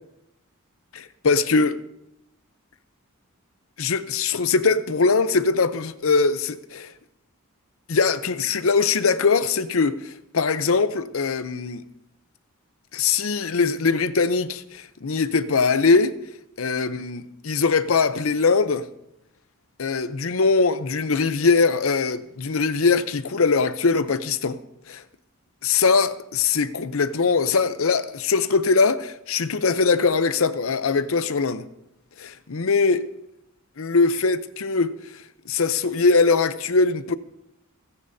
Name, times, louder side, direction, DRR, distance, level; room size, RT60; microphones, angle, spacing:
voice 1, 0.9-1.8 3.8-6.9 7.9-11.8 12.9-16.2 16.6-18.9 19.8-24.6 24.9-25.0 25.6-31.7 32.2-33.1 33.8-37.1, left 4 dB, 70° left, 0.7 m, -21 dB
29.5 x 10.0 x 2.8 m
head